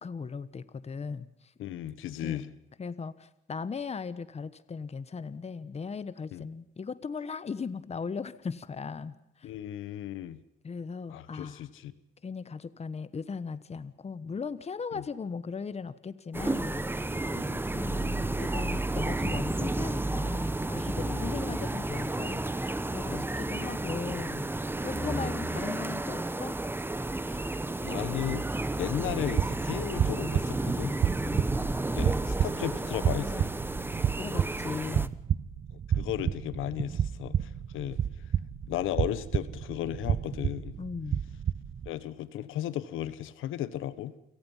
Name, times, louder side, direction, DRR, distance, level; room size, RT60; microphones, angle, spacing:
voice 1, 0.0-1.5 2.2-2.4 2.8-9.5 10.6-11.7 12.2-26.6 31.2-31.5 34.2-35.2 40.8-41.2, left 5 dB, 30° left, 15 dB, 1.2 m, -38 dB
voice 2, 1.6-2.5 6.3-6.4 9.4-10.4 11.1-11.9 14.9-15.0 17.3-17.5 21.0-21.6 23.1-23.2 24.9-25.5 27.3-27.4 27.8-28.4 28.8-30.9 32.0-33.5 35.9-38.0 38.6-40.8 41.8-44.1, left 12 dB, 90° left, 15 dB, 1.4 m, -35 dB
sound 1, 16.3-35.1, right 2 dB, 10° right, 1.0 m, -32 dB
sound 2, 29.1-41.9, right 9 dB, 50° right, 1.0 m, -31 dB
29.0 x 17.5 x 5.6 m, 0.83 s
cardioid pair, 90°, 20 cm